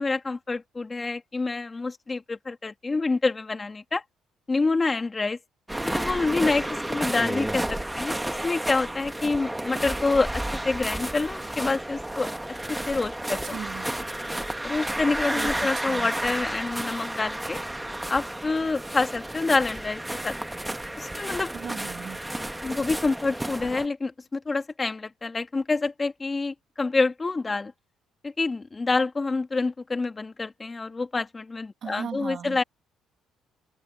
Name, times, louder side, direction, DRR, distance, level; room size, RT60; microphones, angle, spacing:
voice 1, 0.0-4.0 4.5-5.4 5.8-12.3 12.7-13.6 14.6-17.6 18.1-20.4 21.0-21.6 22.6-27.7 28.2-32.6, left 3 dB, 25° left, 2.1 m, -27 dB
sound 1, 5.7-23.9, right 1 dB, 10° right, 1.5 m, -32 dB
voice 2, 13.5-13.9 15.3-16.1 21.5-22.2 31.8-32.6, right 8 dB, 55° right, 2.1 m, -37 dB
cardioid pair, 85°, 0 cm